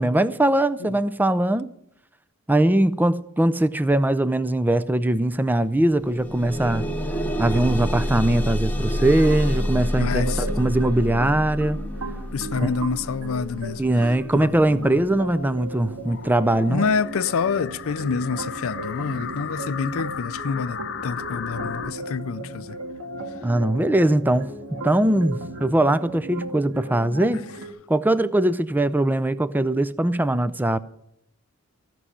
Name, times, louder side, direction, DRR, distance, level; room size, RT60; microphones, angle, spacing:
voice 1, 0.0-1.7 2.5-6.9 7.4-11.8 12.6-12.7 13.8-16.9 23.4-24.5 24.8-27.4 27.9-30.8, right 1 dB, 10° right, 0.4 m, -21 dB
sound 1, 5.2-5.3 5.7-16.7 17.5-17.6 18.1-18.2, equal, 5° left, 1.0 m, -29 dB
sound 2, 9.0-27.7, right 1 dB, 75° right, 2.0 m, -36 dB
voice 2, 10.0-10.6 12.3-15.0 16.7-22.8 27.3-27.4, left 5 dB, 70° left, 0.5 m, -28 dB
sound 3, 16.1-21.9, left 7 dB, 55° left, 0.8 m, -35 dB
15.0 x 6.2 x 9.8 m
head